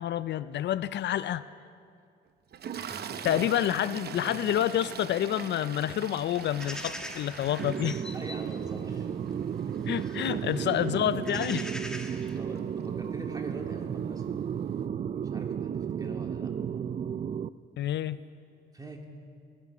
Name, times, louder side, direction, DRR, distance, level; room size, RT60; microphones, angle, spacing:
voice 1, 0.0-1.4 3.2-8.0 9.9-11.7 17.8-18.2, left 11 dB, 60° left, 16 dB, 0.4 m, -28 dB
Toilet flush, 2.5-12.8 13.8-13.9 14.2-14.4, right 8 dB, 55° right, 0.8 m, -43 dB
voice 2, 2.7-3.4 4.2-4.4 8.1-9.1 9.4-9.8 10.3-11.2 12.1-14.3 15.1-16.5 18.7-19.0, right 1 dB, 20° right, 2 dB, 2.3 m, -45 dB
sound 1, 6.3-12.4, left 1 dB, 5° left, 1.3 m, -44 dB
sound 2, 7.6-17.5, right 8 dB, 35° right, 0.4 m, -33 dB
18.0 x 12.0 x 6.0 m, 2.4 s
cardioid pair, 90°, 20 cm